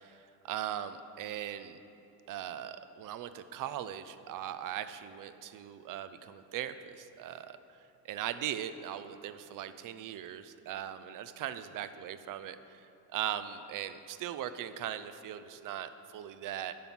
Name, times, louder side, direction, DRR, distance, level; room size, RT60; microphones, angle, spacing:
voice 1, 0.4-1.8 2.3-7.6 8.0-16.7, right 10 dB, 55° right, 12 dB, 0.5 m, -39 dB
11.0 x 5.7 x 6.1 m, 2.8 s
cardioid pair, 135°, 39 cm